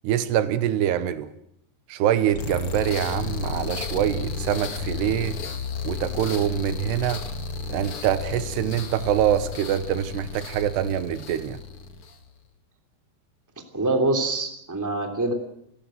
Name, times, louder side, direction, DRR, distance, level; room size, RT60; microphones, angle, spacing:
voice 1, 0.0-1.3 1.9-5.4 5.8-7.2 7.7-11.6, right 10 dB, 85° right, 3.3 m, -24 dB
sound 1, 2.3-12.3, left 5 dB, 45° left, 2.1 m, -33 dB
voice 2, 13.7-15.3, right 2 dB, 5° right, 2.3 m, -24 dB
29.5 x 14.5 x 7.8 m
omnidirectional pair, 4.7 m